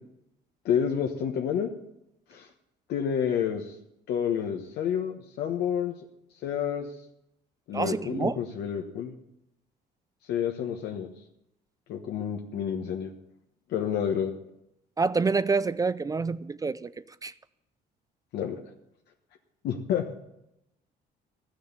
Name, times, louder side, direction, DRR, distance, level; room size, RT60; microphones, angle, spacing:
voice 1, 0.6-1.7 2.3-2.5 2.9-3.7 4.1-5.9 6.4-6.9 7.7-9.1 10.3-11.1 11.9-13.1 13.7-14.3 18.3-18.6 19.6-20.1, left 8 dB, 75° left, 2 dB, 1.3 m, -29 dB
voice 2, 7.7-8.4 15.0-16.9 17.2-17.3, right 4 dB, 20° right, 15 dB, 0.4 m, -27 dB
13.5 x 6.6 x 9.5 m, 0.83 s
cardioid pair, 110°, 17 cm